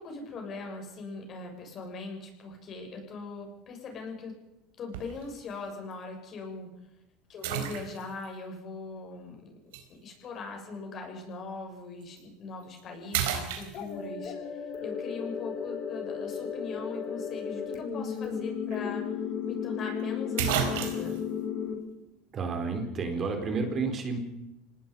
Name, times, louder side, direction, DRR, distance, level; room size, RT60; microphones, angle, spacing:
voice 1, 0.0-4.3 4.8-6.7 7.3-9.7 10.0-19.1 19.5-21.2, left 3 dB, 40° left, 3 dB, 7.0 m, -40 dB
sound 1, 4.9-5.2 5.9-6.0 7.4-8.3 9.7-9.8 12.0-12.2 12.6-12.8 13.1-14.2 18.3-18.4 18.7-18.8 19.9-20.0 20.4-21.2, right 9 dB, 90° right, 4.2 m, -31 dB
sound 2, 13.7-21.7, left 7 dB, 55° left, 4.7 m, -34 dB
voice 2, 22.3-24.2, right 4 dB, 35° right, 5 dB, 4.2 m, -30 dB
26.5 x 19.0 x 5.5 m, 0.90 s
supercardioid pair, 120°, 0 cm